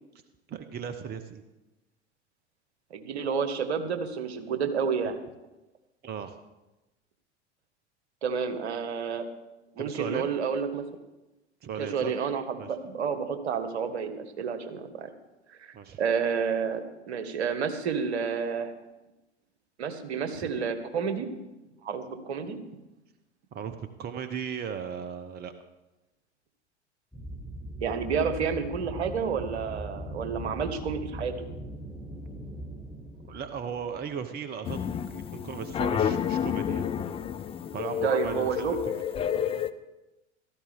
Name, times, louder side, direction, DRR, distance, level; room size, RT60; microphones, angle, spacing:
voice 1, 0.5-1.4 6.0-6.3 9.8-10.3 11.6-12.1 12.6-12.7 15.7-16.0 20.4-20.5 23.5-25.5 33.3-34.8 35.1-36.9 37.7-39.0, right 7 dB, 25° right, 10 dB, 0.9 m, -36 dB
voice 2, 2.9-5.2 8.2-9.3 9.8-10.8 11.8-15.1 15.5-18.7 19.8-21.3 21.8-22.6 27.8-31.5 38.0-38.8, right 6 dB, 65° right, 9 dB, 1.7 m, -30 dB
sound 1, 27.1-34.2, right 1 dB, 5° right, 1.8 m, -40 dB
sound 2, 34.6-39.7, left 8 dB, 15° left, 0.5 m, -30 dB
16.0 x 14.0 x 3.6 m, 1.0 s
figure-of-eight pair, 85°, 35 cm